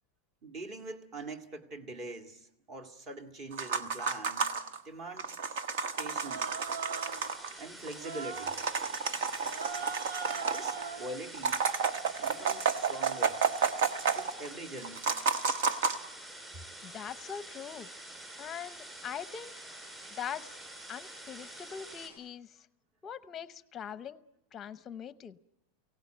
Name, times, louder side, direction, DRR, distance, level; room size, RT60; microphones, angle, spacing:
voice 1, 0.4-4.6 4.8-5.6 6.0-6.5 7.6-8.6 10.5-11.7 12.2-13.4 14.1-15.0, right 2 dB, 30° right, 7 dB, 2.0 m, -43 dB
sound 1, 3.5-4.8 5.2-7.5 7.9-8.0 8.2-10.9 11.3-14.5 14.8-16.0, right 5 dB, 70° right, 1.4 m, -31 dB
sound 2, 5.5-22.1, right 1 dB, 10° right, 6.1 m, -48 dB
Human voice, 6.0-7.3 7.9-8.6 9.4-11.2, right 5 dB, 85° right, 1.1 m, -41 dB
voice 2, 16.8-17.9 18.4-19.5 20.1-20.5 20.9-22.6 23.0-24.2 24.5-25.4, left 8 dB, 20° left, 14 dB, 0.8 m, -42 dB
23.5 x 17.5 x 9.1 m, 0.82 s
supercardioid pair, 165°, 0 cm